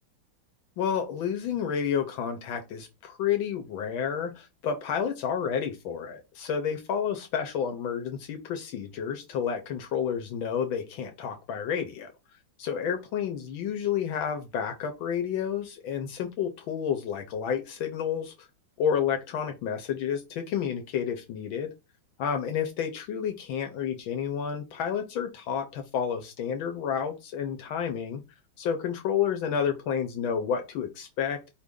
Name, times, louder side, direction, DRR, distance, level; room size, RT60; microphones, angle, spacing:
voice 1, 0.8-12.1 12.6-18.3 18.8-21.7 22.2-28.2 28.6-31.5, left 7 dB, 75° left, 5 dB, 1.5 m, -30 dB
5.0 x 2.5 x 3.6 m, 0.25 s
omnidirectional pair, 2.3 m